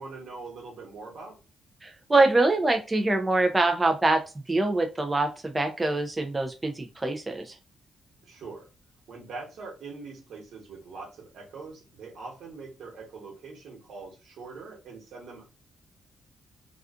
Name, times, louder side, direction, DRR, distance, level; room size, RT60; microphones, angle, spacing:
voice 1, 0.0-1.4 8.2-8.7 9.1-15.4, right 4 dB, 75° right, 0 dB, 1.1 m, -42 dB
voice 2, 1.8-4.2 4.5-7.6, right 2 dB, 20° right, 4 dB, 0.4 m, -24 dB
2.4 x 2.3 x 2.4 m, 0.30 s
cardioid pair, 105°, 0 cm